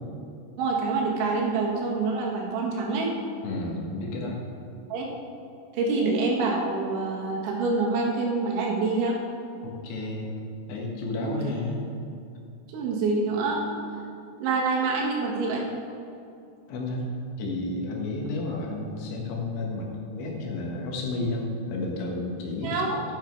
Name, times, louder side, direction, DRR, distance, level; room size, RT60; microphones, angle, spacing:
voice 1, 0.6-3.1 4.9-5.1 5.7-9.2 11.2-11.3 12.7-13.6 14.4-15.7 22.6-23.0, right 3 dB, 80° right, -1 dB, 3.9 m, -26 dB
voice 2, 3.4-4.4 9.6-10.3 10.7-11.8 16.7-17.1 17.4-22.8, left 2 dB, 80° left, -1 dB, 3.8 m, -31 dB
11.5 x 9.2 x 4.6 m, 2.6 s
omnidirectional pair, 5.3 m